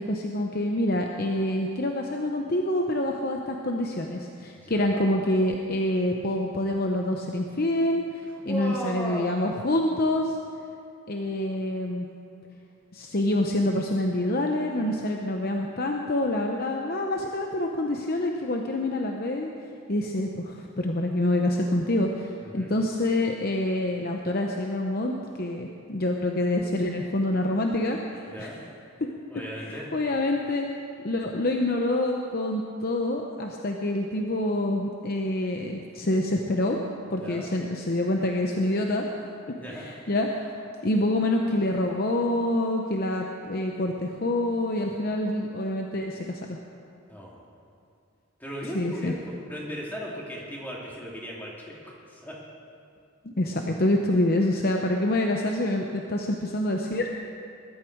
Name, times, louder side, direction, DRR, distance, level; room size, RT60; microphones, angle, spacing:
voice 1, 0.0-8.0 8.4-10.4 11.1-12.1 12.9-19.5 19.9-28.5 29.6-30.7 31.0-36.8 37.1-39.1 39.7-40.5 40.8-46.4 48.7-49.1 53.2-57.1, left 1 dB, 45° left, 2 dB, 0.8 m, -26 dB
voice 2, 4.6-5.0 8.5-9.3 22.4-22.7 28.3-28.6 29.3-29.9 37.2-37.5 39.6-39.8 47.1-47.4 48.4-52.4, equal, 10° left, -4 dB, 2.6 m, -36 dB
20.5 x 12.5 x 4.6 m, 2.4 s
head